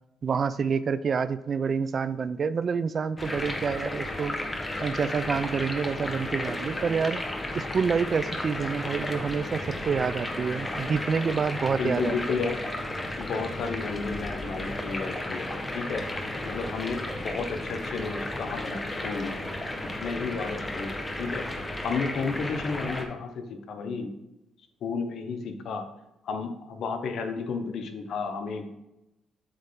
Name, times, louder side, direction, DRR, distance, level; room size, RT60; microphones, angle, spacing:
voice 1, 0.2-4.4 4.8-7.2 7.5-12.5, right 6 dB, 45° right, 14 dB, 0.4 m, -28 dB
sound 1, 3.2-23.0, left 1 dB, 20° left, 1.0 m, -33 dB
voice 2, 11.7-12.7 13.2-15.5 15.7-19.4 20.0-21.5 21.8-24.1 24.8-25.9 26.2-28.7, left 4 dB, 70° left, 6 dB, 0.9 m, -32 dB
7.9 x 3.2 x 5.5 m, 0.90 s
cardioid pair, 90°, 0 cm